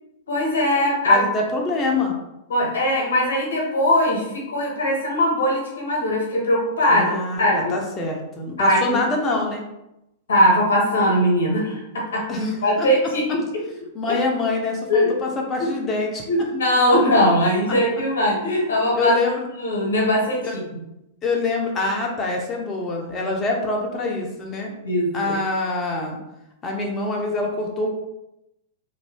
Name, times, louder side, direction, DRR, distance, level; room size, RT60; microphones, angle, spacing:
voice 1, 0.3-1.2 2.5-7.7 8.6-9.0 10.3-13.6 14.1-14.2 14.9-15.1 15.6-15.7 16.3-19.2 19.6-20.6 24.8-25.3, left 1 dB, 70° left, -1 dB, 1.0 m, -20 dB
voice 2, 1.1-2.1 6.9-9.6 12.3-13.4 13.9-16.2 18.9-19.5 20.4-20.6 21.2-24.7 25.1-26.2 26.6-27.9, left 3 dB, 25° left, 0 dB, 0.7 m, -25 dB
2.7 x 2.5 x 3.4 m, 0.88 s
figure-of-eight pair, 100°, 0 cm